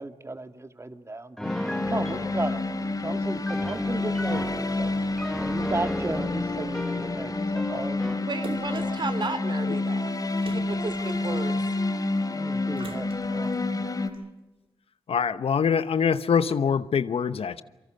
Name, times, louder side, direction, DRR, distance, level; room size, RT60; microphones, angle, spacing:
voice 1, 0.0-1.5 1.9-4.9 5.4-8.3 8.7-9.0 12.3-13.5, right 2 dB, 30° right, 8 dB, 2.1 m, -35 dB
sound 1, 1.4-14.1, left 2 dB, 40° left, 3.0 m, -29 dB
Piano, 1.4-8.3, equal, 5° left, 1.0 m, -36 dB
voice 2, 8.2-10.2 10.5-11.6, right 3 dB, 50° right, 11 dB, 3.2 m, -34 dB
Splash splatter, 8.4-9.0 10.4-11.6 12.8-13.6 14.1-14.2, right 5 dB, 65° right, 2.0 m, -43 dB
voice 3, 15.1-17.6, left 6 dB, 75° left, 14 dB, 1.0 m, -24 dB
26.5 x 24.0 x 6.8 m, 1.0 s
cardioid pair, 55°, 10 cm